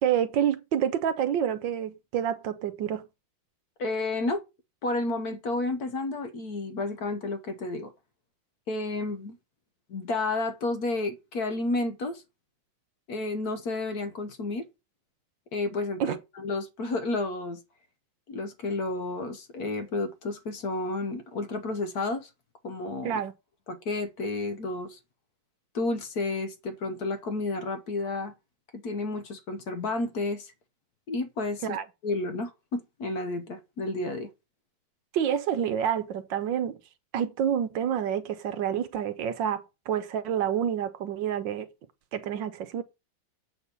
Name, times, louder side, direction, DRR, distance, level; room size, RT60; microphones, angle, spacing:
voice 1, 0.0-3.1 16.0-16.2 23.0-23.3 31.6-31.8 35.1-36.8 37.1-41.7 42.1-42.8, right 9 dB, 70° right, 1.4 m, -28 dB
voice 2, 3.8-4.4 4.8-7.9 8.7-9.4 9.9-12.2 13.1-14.7 15.5-17.6 18.3-22.3 22.6-23.2 23.7-25.0 25.7-28.3 28.7-30.5 31.1-31.8 32.0-34.3, left 2 dB, 55° left, 1.4 m, -31 dB
8.0 x 4.2 x 6.8 m
omnidirectional pair, 2.2 m